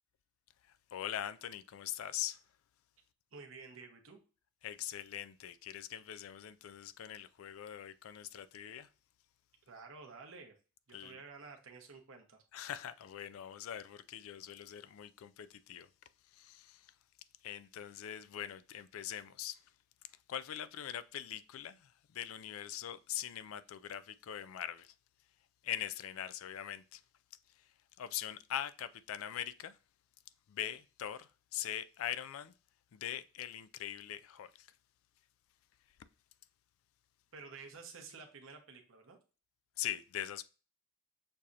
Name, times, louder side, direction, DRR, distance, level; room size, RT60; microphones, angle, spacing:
voice 1, 0.9-2.4 4.6-8.9 10.9-11.2 12.5-15.9 16.3-16.9 17.4-19.6 20.3-24.9 25.6-27.0 27.6-27.7 28.0-29.8 30.5-32.5 32.9-34.7 39.8-40.4, left 11 dB, 75° left, 0.3 m, -42 dB
voice 2, 3.3-4.2 9.7-10.6 10.9-12.4 37.3-39.2, right 4 dB, 70° right, 0.9 m, -51 dB
6.5 x 2.8 x 2.5 m
head